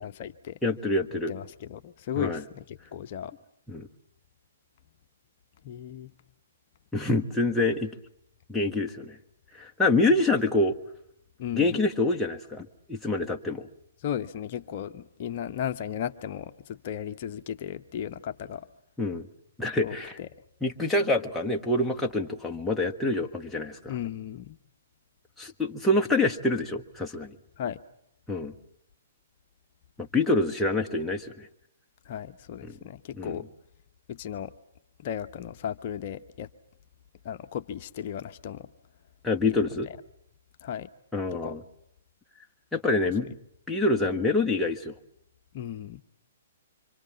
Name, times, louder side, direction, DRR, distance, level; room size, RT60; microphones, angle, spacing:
voice 1, 0.0-0.6 1.3-3.3 5.6-6.1 11.4-11.8 14.0-18.7 19.8-20.3 23.9-24.6 27.6-27.8 32.0-33.4 34.1-34.5 35.0-36.5 37.2-38.7 39.4-40.0 40.6-40.9 41.3-41.6 45.5-46.0, left 9 dB, 45° left, 7 dB, 0.9 m, -35 dB
voice 2, 0.6-1.3 2.2-2.4 3.7-3.9 6.9-7.9 8.5-9.2 9.5-10.8 11.5-13.7 19.0-19.3 19.6-20.2 20.6-23.9 25.4-27.3 28.3-28.5 30.0-31.5 32.6-32.8 33.2-33.4 39.2-39.9 41.1-41.6 42.7-43.3 43.7-44.9, left 2 dB, 5° left, -1 dB, 1.5 m, -26 dB
26.5 x 25.5 x 7.3 m, 0.79 s
figure-of-eight pair, 120°, 0 cm